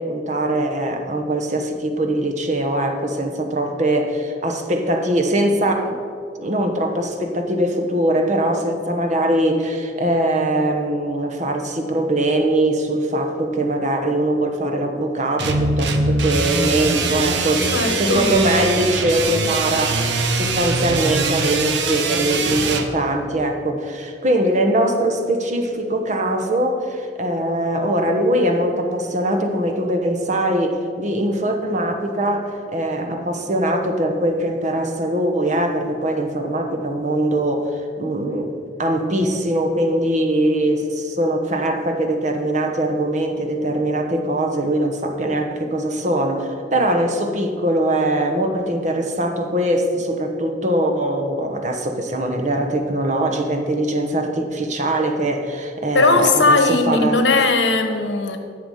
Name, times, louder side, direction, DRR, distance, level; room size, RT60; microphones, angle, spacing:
voice 1, 0.0-5.9 6.4-38.5 38.8-57.2, right 1 dB, 40° right, 4 dB, 1.1 m, -22 dB
sound 1, 15.4-22.9, right 3 dB, 80° right, 0.9 m, -22 dB
voice 2, 17.7-18.3 55.9-58.4, left 3 dB, 85° left, 6 dB, 1.1 m, -18 dB
10.5 x 6.9 x 5.5 m, 2.2 s
head